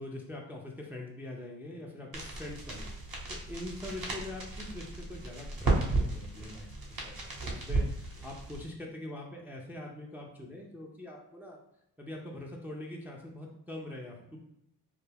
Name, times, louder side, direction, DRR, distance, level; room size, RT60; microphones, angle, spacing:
voice 1, 0.0-11.6 12.0-14.4, left 1 dB, 5° right, -1 dB, 0.4 m, -43 dB
sound 1, 2.1-8.7, right 2 dB, 45° right, 1.0 m, -34 dB
2.3 x 2.1 x 3.3 m, 0.79 s
supercardioid pair, 65°, 44 cm